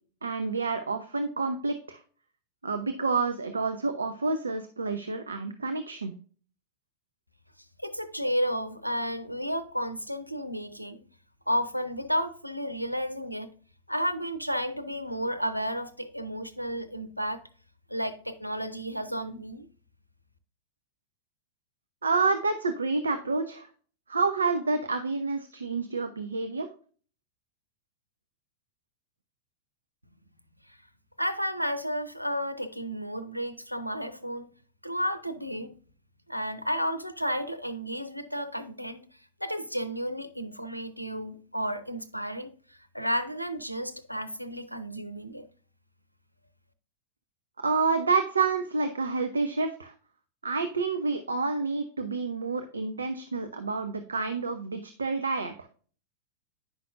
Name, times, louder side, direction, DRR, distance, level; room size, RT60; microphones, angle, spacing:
voice 1, 0.2-2.0 2.6-6.1 22.0-23.7 24.1-26.7 47.6-49.9 50.4-55.7, right 4 dB, 75° right, 0.6 m, -29 dB
voice 2, 7.8-11.0 11.5-13.5 13.9-17.4 17.9-19.7 30.7-30.8 31.2-34.5 34.8-35.7 36.3-39.0 39.4-45.4, equal, 90° left, 0.6 m, -32 dB
9.3 x 5.8 x 2.5 m
figure-of-eight pair, 90°, 0 cm